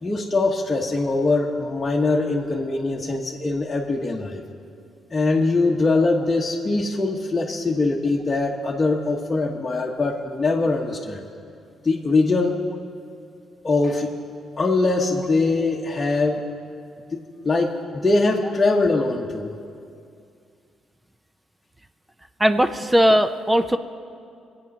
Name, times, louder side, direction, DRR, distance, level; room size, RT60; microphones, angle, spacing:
voice 1, 0.0-4.4 5.1-11.2 11.8-12.6 13.6-14.2 14.6-16.5 17.1-19.5, left 3 dB, 25° left, -3 dB, 1.2 m, -22 dB
voice 2, 22.4-23.8, equal, 10° right, 10 dB, 0.6 m, -18 dB
22.5 x 8.7 x 5.4 m, 2.4 s
cardioid pair, 90°, 0 cm